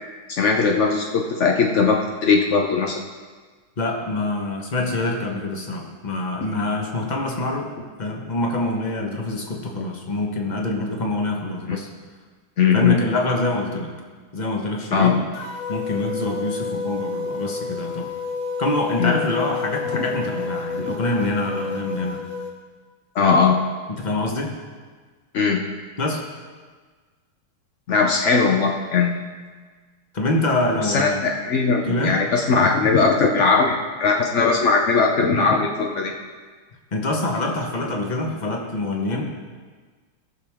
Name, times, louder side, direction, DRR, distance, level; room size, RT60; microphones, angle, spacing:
voice 1, 0.3-3.0 12.6-13.0 14.9-15.1 19.0-19.2 19.9-20.0 20.8-20.9 23.1-23.6 25.3-25.6 27.9-29.2 30.8-36.1, left 5 dB, 80° left, 1 dB, 0.6 m, -19 dB
voice 2, 3.8-7.7 8.0-11.9 12.7-13.9 14.3-15.2 15.7-18.1 18.6-22.3 23.9-24.6 26.0-26.2 30.1-31.2 31.8-32.2 36.9-39.3, left 2 dB, 25° left, 0 dB, 1.0 m, -25 dB
sound 1, 15.3-22.5, left 4 dB, 45° left, 1.5 m, -30 dB
17.5 x 6.8 x 3.6 m, 1.5 s
omnidirectional pair, 2.3 m